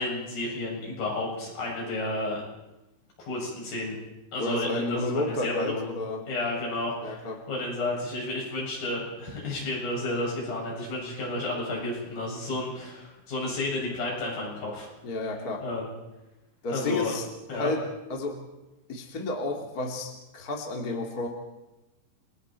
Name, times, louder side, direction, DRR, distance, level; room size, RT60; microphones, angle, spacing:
voice 1, 0.0-2.4 3.2-4.0 4.3-5.9 6.3-14.9 15.6-15.9 16.7-17.2 17.5-17.7, left 2 dB, 55° left, -2 dB, 9.2 m, -31 dB
voice 2, 4.4-6.3 7.0-7.4 15.0-15.6 16.6-17.8 18.1-18.4 18.9-21.3, left 2 dB, 30° left, 2 dB, 2.1 m, -31 dB
29.5 x 22.5 x 4.6 m, 1.0 s
omnidirectional pair, 5.0 m